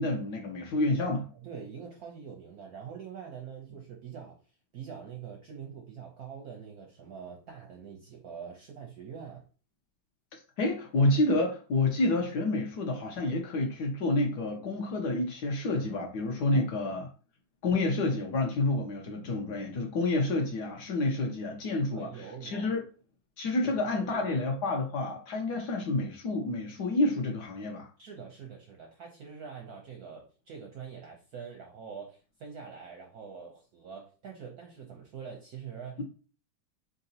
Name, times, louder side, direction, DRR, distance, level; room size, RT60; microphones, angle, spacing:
voice 1, 0.0-1.3 10.6-17.1 17.6-22.1 22.4-22.8 23.4-27.9, left 2 dB, 65° left, 2 dB, 1.2 m, -29 dB
voice 2, 1.4-4.4 4.7-9.4 16.5-16.9 21.9-22.7 23.6-24.3 28.0-36.0, right 6 dB, 65° right, 1 dB, 0.9 m, -44 dB
4.1 x 3.8 x 2.7 m, 0.36 s
omnidirectional pair, 2.3 m